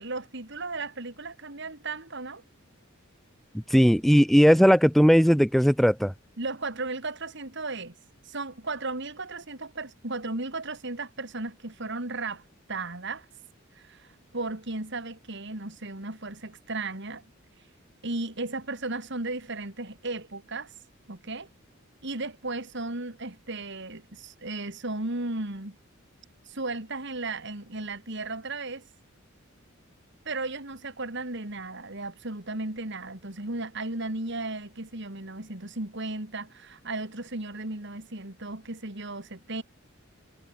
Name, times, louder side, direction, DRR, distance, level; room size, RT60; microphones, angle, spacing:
voice 1, 0.0-2.4 6.4-7.9 8.2-12.4 12.7-13.2 13.7-17.2 18.0-20.7 21.1-21.5 22.0-25.8 26.5-28.9 30.2-39.6, right 2 dB, 55° right, 3.1 m, -35 dB
voice 2, 3.7-6.1, equal, ahead, 1.2 m, -18 dB
head